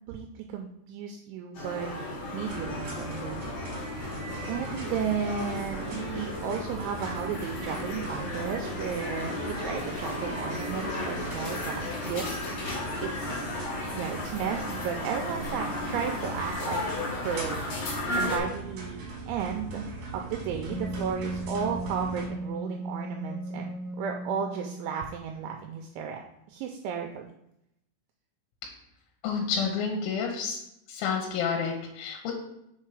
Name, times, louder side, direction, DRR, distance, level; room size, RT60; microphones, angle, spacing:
voice 1, 0.1-1.9 2.3-4.1 4.5-13.7 13.9-16.8 17.2-26.2 26.5-27.3, right 7 dB, 85° right, 3 dB, 2.7 m, -34 dB
sound 1, 1.5-18.4, left 2 dB, 50° left, 2.2 m, -34 dB
sound 2, 2.4-22.2, right 3 dB, 70° right, 2.0 m, -41 dB
Wind instrument woodwind instrument, 20.6-25.1, right 1 dB, 20° left, 1.4 m, -36 dB
voice 2, 29.2-30.6 30.9-32.3, left 6 dB, 75° left, 1 dB, 3.1 m, -29 dB
6.6 x 4.5 x 4.8 m, 0.79 s
omnidirectional pair, 5.9 m